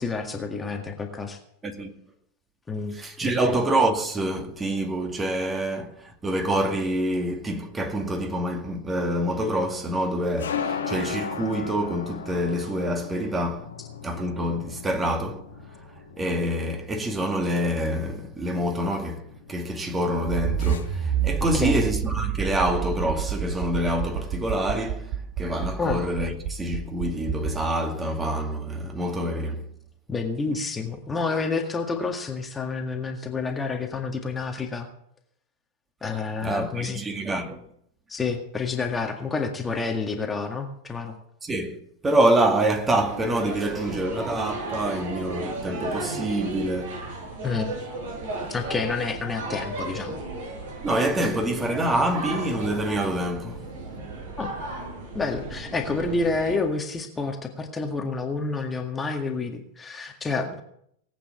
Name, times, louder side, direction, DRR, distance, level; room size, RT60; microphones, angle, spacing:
voice 1, 0.0-1.4 2.7-2.9 3.2-3.6 21.5-21.8 25.8-26.0 30.1-34.9 36.0-37.0 38.1-41.1 47.4-47.7 48.5-50.2 54.4-54.5 55.1-60.6, left 4 dB, 15° left, 1.8 m, -29 dB
voice 2, 2.9-13.7 14.0-15.4 16.2-19.2 19.5-29.6 36.4-37.6 41.4-47.0 50.8-53.6, right 1 dB, 15° right, 2.3 m, -26 dB
sound 1, 7.4-21.4, left 6 dB, 65° left, 1.7 m, -38 dB
Accelerating revving vroom, 20.2-27.5, right 9 dB, 40° right, 1.3 m, -29 dB
sound 2, 43.1-56.6, right 2 dB, 60° right, 7.6 m, -35 dB
19.0 x 8.7 x 7.3 m
figure-of-eight pair, 90°, 0 cm